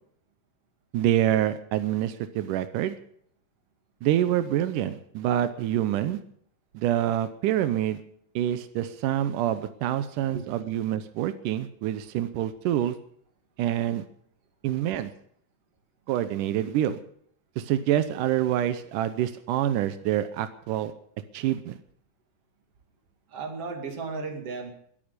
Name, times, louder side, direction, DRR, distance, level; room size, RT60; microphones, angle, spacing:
voice 1, 0.9-2.9 4.0-6.2 6.7-8.0 8.4-12.9 13.6-14.0 14.6-15.1 16.1-17.0 17.6-20.9 21.3-21.8, right 12 dB, 90° right, 11 dB, 2.4 m, -26 dB
voice 2, 23.3-24.7, right 4 dB, 50° right, 5 dB, 3.2 m, -34 dB
21.5 x 8.8 x 6.7 m, 0.64 s
omnidirectional pair, 3.6 m